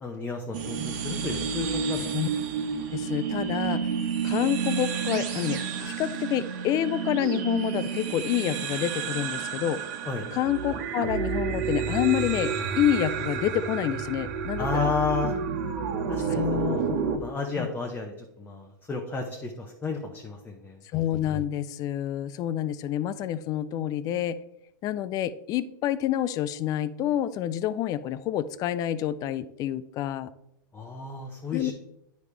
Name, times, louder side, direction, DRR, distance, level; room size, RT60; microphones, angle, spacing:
voice 1, 0.0-2.1 10.1-10.3 14.6-15.3 16.1-16.9 17.2-20.8 30.7-31.7, left 4 dB, 15° left, 1 dB, 0.9 m, -32 dB
sound 1, 0.5-17.2, right 6 dB, 55° right, 1.3 m, -30 dB
voice 2, 2.9-3.8 4.2-9.8 10.3-14.9 16.3-17.2 17.6-17.7 20.9-24.4 24.8-30.3 31.5-31.7, left 11 dB, 35° left, 15 dB, 0.4 m, -28 dB
9.2 x 5.1 x 3.3 m, 0.81 s
hypercardioid pair, 120°, 11 cm